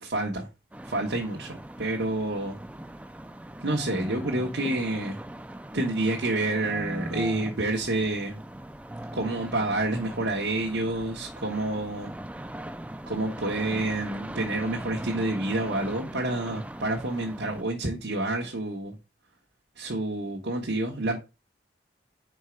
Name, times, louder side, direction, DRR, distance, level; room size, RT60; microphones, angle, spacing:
voice 1, 0.0-0.5 0.8-2.6 3.6-5.2 5.7-8.4 9.1-12.1 13.1-18.9 19.8-21.2, right 2 dB, 80° right, 1.2 m, -28 dB
sound 1, 0.7-17.6, right 1 dB, 10° right, 0.3 m, -40 dB
5.0 x 4.5 x 4.5 m
head